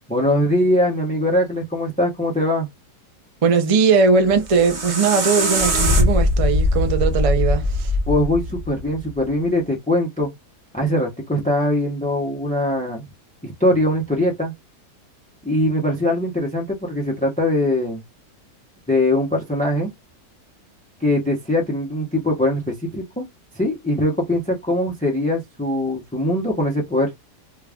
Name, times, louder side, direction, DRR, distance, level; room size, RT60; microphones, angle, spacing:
voice 1, 0.1-2.7 8.1-10.3 10.7-13.1 13.4-14.5 15.4-18.0 18.9-19.9 21.0-23.2 23.5-27.1, left 1 dB, 10° left, 0.4 m, -21 dB
voice 2, 3.4-7.9, right 5 dB, 60° right, 0.3 m, -19 dB
sound 1, 4.2-9.3, left 1 dB, 35° right, 0.9 m, -21 dB
3.1 x 2.4 x 3.5 m
omnidirectional pair, 1.8 m